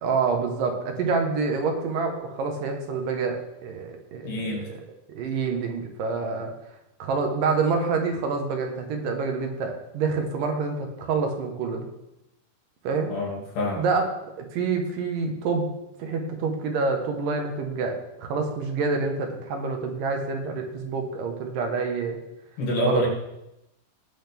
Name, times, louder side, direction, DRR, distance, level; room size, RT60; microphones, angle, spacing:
voice 1, 0.0-6.5 7.0-11.9 12.8-13.1 13.8-15.7 16.0-22.2 22.9-23.1, right 4 dB, 75° right, 3 dB, 2.8 m, -27 dB
voice 2, 4.2-4.7 13.1-13.9 22.6-23.1, left 1 dB, 70° left, -3 dB, 4.0 m, -26 dB
18.5 x 6.4 x 3.5 m, 0.89 s
omnidirectional pair, 3.9 m